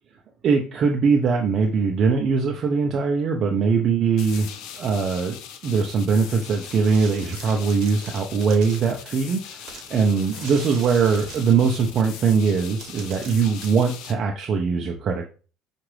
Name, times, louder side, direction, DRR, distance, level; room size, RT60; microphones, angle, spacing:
voice 1, 0.4-5.4 5.6-15.3, right 5 dB, 45° right, 2 dB, 0.6 m, -21 dB
sound 1, 4.2-14.1, left 9 dB, 75° left, 0.5 m, -40 dB
sound 2, 6.5-9.0 9.7-11.9 12.5-12.6 12.8-13.7, right 6 dB, 65° right, 1.0 m, -42 dB
5.8 x 2.5 x 3.2 m, 0.36 s
supercardioid pair, 105°, 0 cm